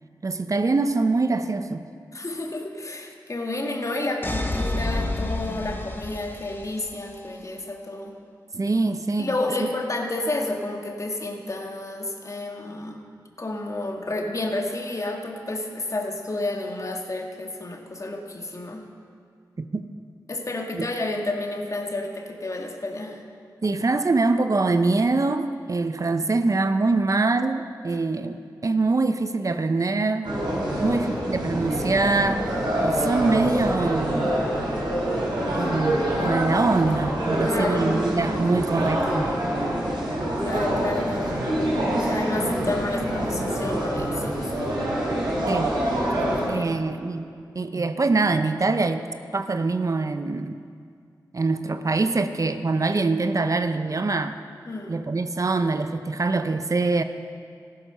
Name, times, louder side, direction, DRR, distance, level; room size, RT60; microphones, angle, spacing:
voice 1, 0.2-1.8 8.5-9.3 9.6-9.7 19.6-19.9 20.7-20.9 23.6-30.3 30.8-32.4 32.8-34.5 35.5-39.3 45.5-45.7 46.5-47.3 47.5-49.0 49.3-50.6 51.3-54.3 54.9-57.0, right 3 dB, 45° right, 9 dB, 0.7 m, -24 dB
voice 2, 2.1-8.1 9.2-13.0 13.4-18.8 20.3-23.2 30.7-31.1 37.4-38.0 40.5-44.7 46.2-46.8 54.7-55.0, left 2 dB, 45° left, 2 dB, 1.9 m, -31 dB
sound 1, 4.2-7.1, left 2 dB, 25° left, 1.4 m, -29 dB
sound 2, 30.2-46.5, right 1 dB, 80° right, 4.0 m, -26 dB
14.5 x 12.5 x 5.6 m, 2.2 s
cardioid pair, 45°, 8 cm